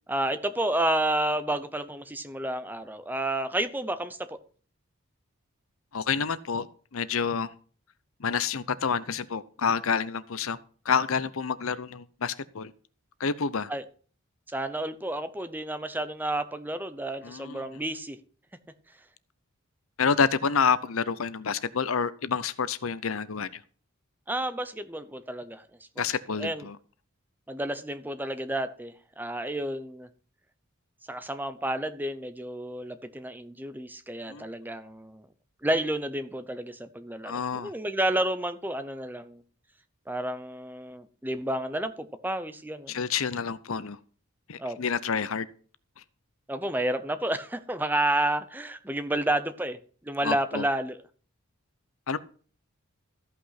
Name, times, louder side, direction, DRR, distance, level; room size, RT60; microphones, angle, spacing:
voice 1, 0.1-4.4 13.7-13.8 14.5-18.2 24.3-25.6 26.0-26.1 26.4-26.7 27.5-30.1 31.1-35.3 35.6-39.4 40.1-42.9 44.6-44.8 46.5-49.8 50.0-51.0, right 1 dB, 10° right, 0.7 m, -30 dB
voice 2, 5.9-6.7 6.9-7.5 8.2-10.6 10.8-12.7 13.2-13.7 17.2-17.6 20.0-23.6 26.0-26.8 34.3-34.5 37.2-37.7 42.9-44.0 44.5-45.5 50.2-50.6 52.1-52.2, left 6 dB, 70° left, 0.7 m, -28 dB
14.0 x 5.7 x 5.8 m
head